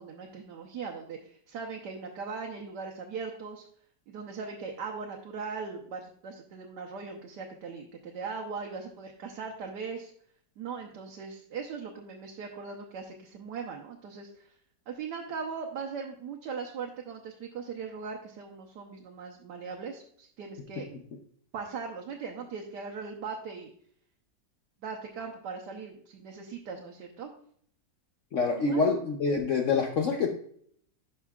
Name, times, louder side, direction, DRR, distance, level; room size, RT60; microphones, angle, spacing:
voice 1, 0.0-3.6 4.1-10.1 10.6-14.3 14.9-20.9 21.5-23.7 24.8-27.3 28.7-29.0, right 5 dB, 75° right, 1 dB, 1.4 m, -39 dB
voice 2, 28.3-30.3, left 4 dB, 60° left, 2 dB, 0.9 m, -26 dB
11.5 x 5.6 x 2.3 m, 0.63 s
omnidirectional pair, 1.8 m